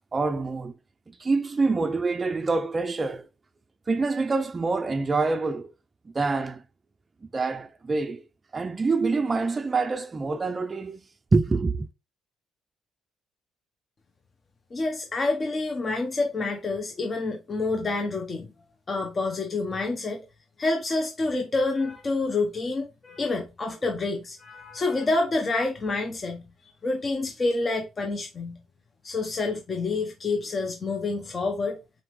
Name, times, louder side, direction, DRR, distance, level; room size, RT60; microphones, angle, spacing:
voice 1, 0.1-0.7 1.2-3.3 3.9-5.7 6.1-6.6 7.3-8.2 8.5-11.0 11.3-11.9, right 3 dB, 30° right, 0.4 m, -26 dB
voice 2, 14.7-18.5 18.9-20.2 20.6-26.4 26.8-28.6 29.0-31.8, left 3 dB, 35° left, 0.9 m, -28 dB
4.1 x 2.9 x 3.1 m
supercardioid pair, 75°, 0 cm